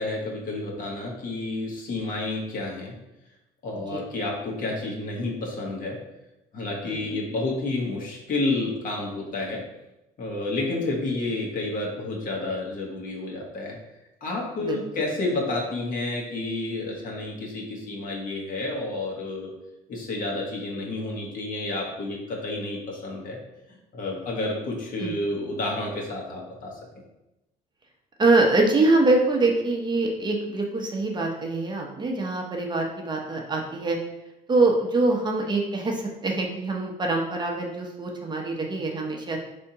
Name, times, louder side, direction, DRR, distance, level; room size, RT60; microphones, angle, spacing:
voice 1, 0.0-2.9 3.6-6.0 6.5-9.6 10.2-13.7 14.2-19.5 19.9-23.4 23.9-26.7, left 2 dB, 55° left, -2 dB, 1.3 m, -30 dB
voice 2, 6.8-7.2 14.6-14.8 25.0-25.2 28.2-34.0 34.5-39.4, right 2 dB, 25° right, 0 dB, 0.7 m, -24 dB
4.3 x 3.5 x 2.8 m, 0.94 s
cardioid pair, 110°, 17 cm